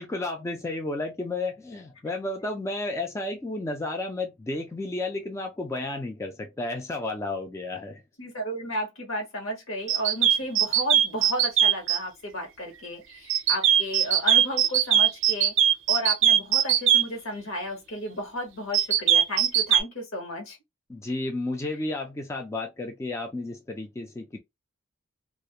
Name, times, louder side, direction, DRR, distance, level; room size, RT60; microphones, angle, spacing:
voice 1, 0.0-8.0 20.9-24.4, left 2 dB, 15° left, 0.3 m, -32 dB
voice 2, 8.2-15.5 15.9-20.6, equal, 70° left, 1.1 m, -33 dB
sound 1, 9.9-12.0 13.3-17.0 18.7-19.8, right 10 dB, 65° right, 0.4 m, -20 dB
2.4 x 2.0 x 2.8 m
head